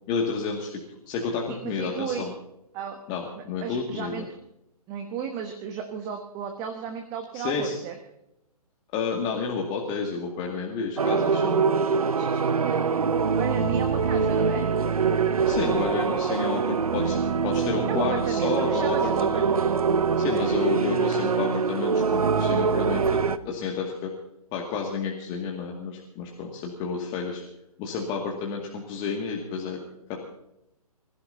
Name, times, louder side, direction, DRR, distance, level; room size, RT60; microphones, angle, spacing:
voice 1, 0.1-0.8 1.1-2.3 3.1-4.2 7.3-7.8 8.9-11.6 15.4-17.2 17.4-19.5 20.2-23.2 23.5-24.1 24.5-27.4 27.8-29.8 30.1-30.2, left 5 dB, 20° left, -1 dB, 2.1 m, -30 dB
voice 2, 1.5-2.3 2.7-3.0 3.3-4.3 4.9-7.9 11.9-12.8 13.1-14.7 15.4-15.8 17.9-19.4 20.1-20.9, right 7 dB, 20° right, 5 dB, 1.3 m, -34 dB
sound 1, 11.0-23.4, right 5 dB, 65° right, 0.9 m, -24 dB
26.5 x 15.5 x 2.8 m, 0.83 s
figure-of-eight pair, 130°, 20 cm